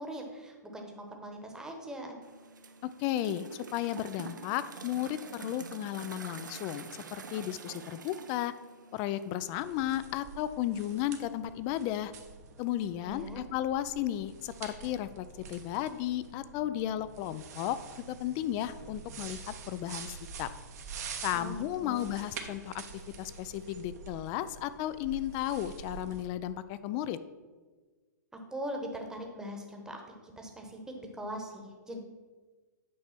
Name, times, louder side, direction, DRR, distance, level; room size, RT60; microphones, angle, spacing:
voice 1, 0.0-2.2 13.0-13.4 21.3-22.1 28.5-30.0 30.4-32.0, equal, 5° right, 2 dB, 1.1 m, -41 dB
sound 1, 2.2-9.3, right 5 dB, 85° right, 0.6 m, -47 dB
voice 2, 2.8-8.5 8.9-12.1 12.6-20.5 21.2-27.2, left 12 dB, 35° left, 14 dB, 0.3 m, -34 dB
sound 2, 9.5-26.2, right 5 dB, 60° right, 1.1 m, -47 dB
8.4 x 3.3 x 5.9 m, 1.4 s
hypercardioid pair, 125°, 10 cm